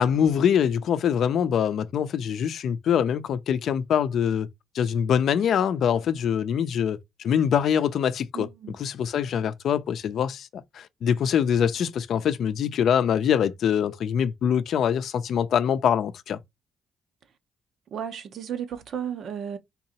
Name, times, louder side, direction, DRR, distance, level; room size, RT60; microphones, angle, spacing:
voice 1, 0.0-4.5 4.7-7.0 7.2-10.5 10.7-16.4, left 8 dB, 70° left, 0.5 m, -24 dB
voice 2, 8.3-8.8 17.9-19.6, right 8 dB, 65° right, 0.7 m, -33 dB
3.7 x 2.7 x 2.8 m
cardioid pair, 90°, 0 cm